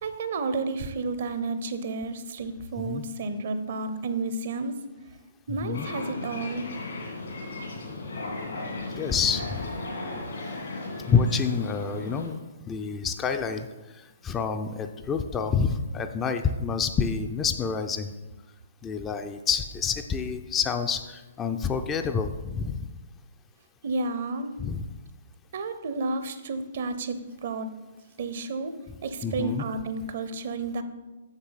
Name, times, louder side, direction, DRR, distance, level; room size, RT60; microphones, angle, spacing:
voice 1, 0.0-4.7 5.5-6.7 23.8-24.5 25.5-27.7 28.2-28.7 29.0-30.8, right 3 dB, 50° right, 10 dB, 0.7 m, -31 dB
voice 2, 5.5-5.9 8.9-9.7 11.1-12.4 12.7-13.7 13.9-18.1 18.8-22.9 24.6-24.8 29.2-29.6, left 6 dB, 20° left, 7 dB, 0.4 m, -28 dB
sound 1, 5.7-12.3, left 2 dB, 65° left, 2.3 m, -36 dB
7.2 x 7.1 x 4.1 m, 1.1 s
figure-of-eight pair, 120°, 0 cm